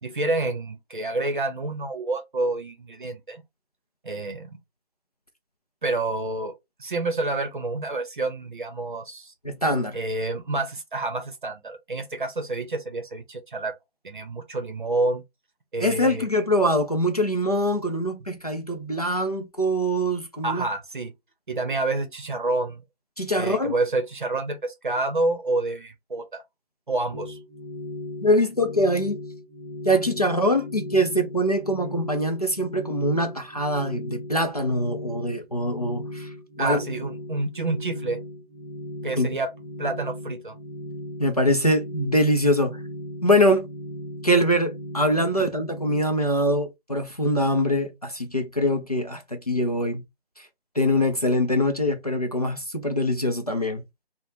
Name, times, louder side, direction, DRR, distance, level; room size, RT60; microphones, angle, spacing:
voice 1, 0.0-3.4 4.0-4.5 5.8-6.5 6.8-9.3 9.9-13.7 14.0-15.2 15.7-16.3 20.4-21.1 21.5-22.8 23.4-26.4 26.9-27.4 36.6-38.2 39.0-39.5 39.8-40.6, right 2 dB, 50° right, 0.7 m, -28 dB
voice 2, 9.4-10.0 15.8-20.7 23.2-23.8 28.2-29.2 29.8-36.8 39.1-39.4 41.2-42.8 43.2-43.7 44.2-50.0 50.4-50.5 50.7-53.8, equal, 40° left, 0.4 m, -23 dB
sound 1, 27.1-46.0, left 1 dB, 5° right, 0.8 m, -37 dB
2.5 x 2.1 x 3.1 m
figure-of-eight pair, 160°, 32 cm